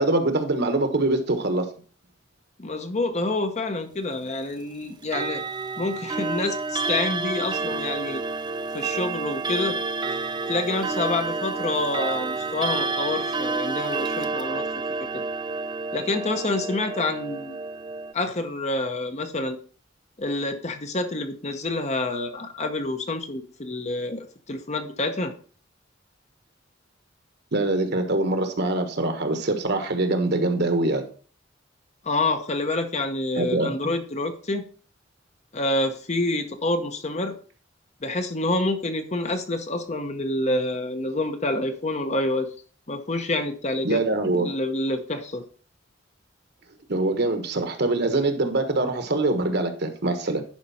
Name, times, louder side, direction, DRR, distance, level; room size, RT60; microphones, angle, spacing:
voice 1, 0.0-1.6 27.5-31.0 33.4-33.7 43.8-44.5 46.9-50.4, right 2 dB, 60° right, 7 dB, 1.3 m, -24 dB
voice 2, 2.6-5.4 5.8-8.2 8.7-9.8 10.5-14.7 15.0-15.2 15.9-17.6 18.1-19.6 20.2-25.3 32.0-34.6 35.5-37.3 38.0-42.5 42.9-44.0 44.3-45.4, left 2 dB, 35° left, 7 dB, 0.9 m, -27 dB
Clock, 5.0-18.1, right 3 dB, 25° right, 0.6 m, -29 dB
10.5 x 5.2 x 4.2 m, 0.41 s
head